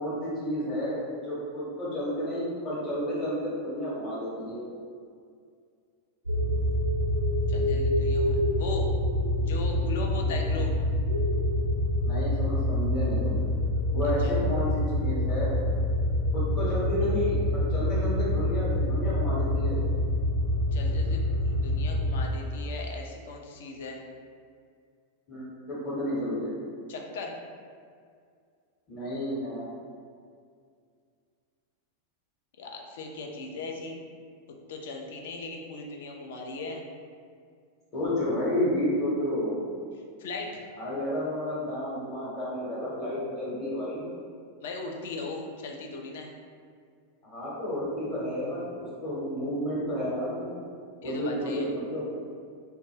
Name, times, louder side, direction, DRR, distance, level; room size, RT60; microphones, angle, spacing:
voice 1, 0.0-4.6 12.0-13.4 13.9-15.6 16.3-19.8 25.3-26.5 28.9-29.7 37.9-39.6 40.8-44.1 47.2-48.6 49.0-50.6 51.0-52.1, equal, 30° left, -8 dB, 0.8 m, -31 dB
sound 1, 6.3-22.3, left 1 dB, 85° right, 0.4 m, -26 dB
voice 2, 7.5-8.9 9.4-10.7 14.2-14.3 20.7-24.0 26.9-27.3 32.6-34.0 34.7-36.8 40.2-40.6 44.6-46.3 51.0-51.7, left 3 dB, 55° left, 1 dB, 0.3 m, -38 dB
2.2 x 2.1 x 3.1 m, 2.2 s
figure-of-eight pair, 90°, 0 cm